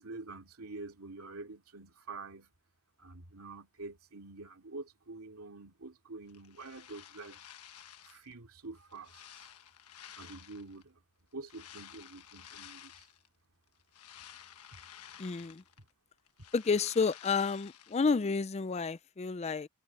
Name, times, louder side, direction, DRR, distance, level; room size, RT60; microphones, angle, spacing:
voice 1, 0.0-2.5 3.0-7.4 8.0-9.6 10.2-11.0 11.3-13.1 15.8-15.9, right 3 dB, 75° right, 2.6 m, -47 dB
sound 1, 6.3-8.3 8.7-10.8 11.4-13.3 13.7-15.9 16.2-18.1, left 10 dB, 90° left, 1.3 m, -53 dB
voice 2, 15.2-15.6 16.5-19.7, left 4 dB, 30° left, 0.4 m, -30 dB
head